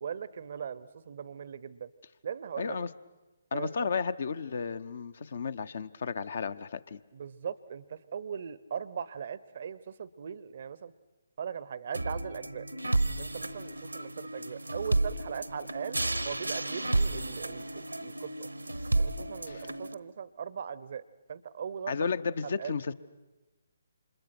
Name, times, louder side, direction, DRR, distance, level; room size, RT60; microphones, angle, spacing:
voice 1, 0.0-1.9 2.2-2.8 3.5-3.9 7.1-10.9 11.4-12.7 13.2-18.5 19.0-21.0 21.3-22.1 22.4-22.8, right 7 dB, 50° right, 18 dB, 0.7 m, -39 dB
voice 2, 2.6-2.9 3.5-7.0 19.5-19.7 21.9-22.9, left 5 dB, 55° left, 14 dB, 0.9 m, -33 dB
sound 1, 11.9-19.9, right 2 dB, 85° right, 1.2 m, -32 dB
29.5 x 26.5 x 6.1 m, 1.1 s
figure-of-eight pair, 135°, 0 cm